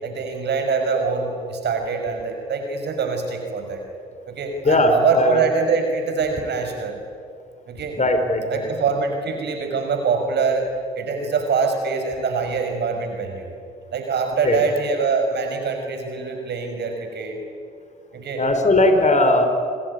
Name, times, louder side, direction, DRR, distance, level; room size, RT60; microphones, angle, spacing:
voice 1, 0.0-3.8 4.3-7.0 7.7-8.0 8.5-10.7 11.0-13.5 13.9-17.4 18.1-18.4, right 5 dB, 60° right, 5 dB, 5.7 m, -24 dB
voice 2, 4.6-5.4 7.9-8.7 14.4-14.6 18.4-19.5, left 1 dB, 35° left, 6 dB, 4.5 m, -18 dB
27.0 x 20.0 x 9.6 m, 2.3 s
hypercardioid pair, 45°, 20 cm